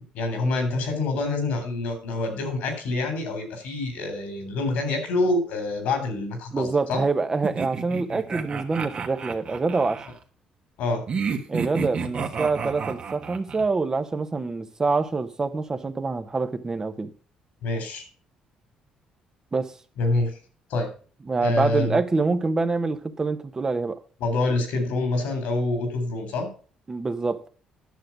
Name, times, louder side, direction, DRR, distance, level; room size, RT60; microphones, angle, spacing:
voice 1, 0.1-7.0 10.8-11.0 17.6-18.0 20.0-20.3 20.7-20.9 21.4-22.0 24.2-26.5, left 2 dB, 80° left, 3.6 m, -26 dB
voice 2, 6.5-10.0 11.5-17.1 19.5-19.7 21.3-24.0 26.9-27.5, right 3 dB, 25° right, 1.0 m, -26 dB
sound 1, 7.4-10.1 11.1-13.7, right 6 dB, 50° right, 1.5 m, -31 dB
10.5 x 6.6 x 5.9 m
cardioid pair, 85°, 2 cm